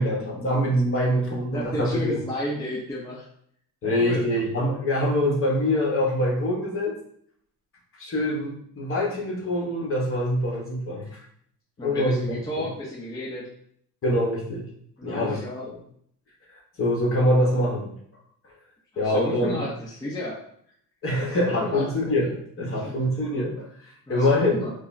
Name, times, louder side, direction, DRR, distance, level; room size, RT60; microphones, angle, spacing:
voice 1, 0.0-2.2 3.8-6.9 8.0-11.1 11.8-12.2 12.6-12.7 14.0-14.7 15.0-15.4 15.7-15.8 16.8-17.9 19.0-19.6 21.0-23.7 24.1-24.6, left 1 dB, 35° left, -3 dB, 1.1 m, -24 dB
voice 2, 1.5-3.3 3.8-4.2 11.8-13.5 15.0-15.7 18.9-20.4 21.2-21.9 22.6-23.2 24.1-24.7, left 1 dB, 10° left, -6 dB, 0.6 m, -32 dB
5.2 x 2.1 x 2.6 m, 0.65 s
cardioid pair, 125°, 38 cm